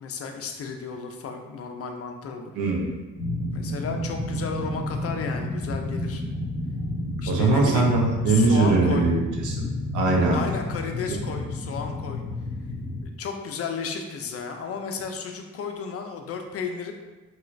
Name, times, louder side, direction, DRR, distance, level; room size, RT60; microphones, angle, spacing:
voice 1, 0.0-2.5 3.5-6.2 7.2-7.9 8.3-9.1 10.3-12.2 13.0-16.9, left 5 dB, 50° left, 4 dB, 0.5 m, -33 dB
voice 2, 2.6-2.9 7.3-9.7 9.9-10.4, right 3 dB, 85° right, -1 dB, 0.7 m, -21 dB
sound 1, 3.1-13.0, left 2 dB, 20° left, 1.1 m, -31 dB
3.0 x 2.4 x 3.1 m, 1.2 s
cardioid pair, 90°, 30 cm